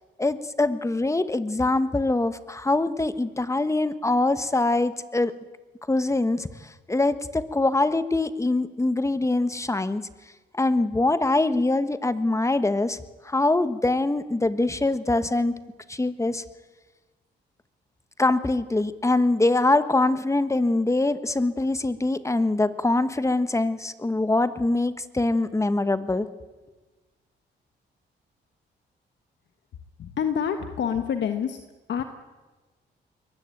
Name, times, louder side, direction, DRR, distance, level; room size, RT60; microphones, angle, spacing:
voice 1, 0.2-5.3 5.9-10.0 10.5-13.0 13.2-15.5 15.9-16.4 18.2-26.3, left 2 dB, 15° left, 12 dB, 1.3 m, -23 dB
voice 2, 30.0-31.6 31.9-32.0, left 8 dB, 70° left, 7 dB, 1.4 m, -27 dB
22.5 x 20.0 x 9.1 m, 1.3 s
cardioid pair, 85°, 19 cm